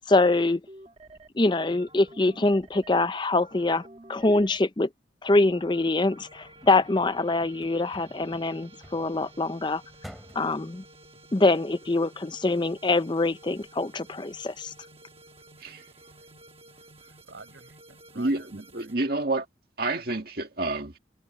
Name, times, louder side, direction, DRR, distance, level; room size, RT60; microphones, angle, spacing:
voice 1, 0.1-0.6 1.4-4.9 5.2-9.8 10.4-10.8 11.3-14.7, left 2 dB, 25° left, 0.6 m, -24 dB
sound 1, 0.7-1.3 1.7-2.9 3.4-4.6 5.5-19.0, right 1 dB, 30° right, 1.3 m, -52 dB
sound 2, 5.3-10.7, equal, ahead, 3.7 m, -52 dB
voice 2, 17.0-19.0, right 3 dB, 70° right, 7.1 m, -50 dB
voice 3, 18.2-19.5 19.8-21.0, right 2 dB, 50° right, 2.0 m, -29 dB
head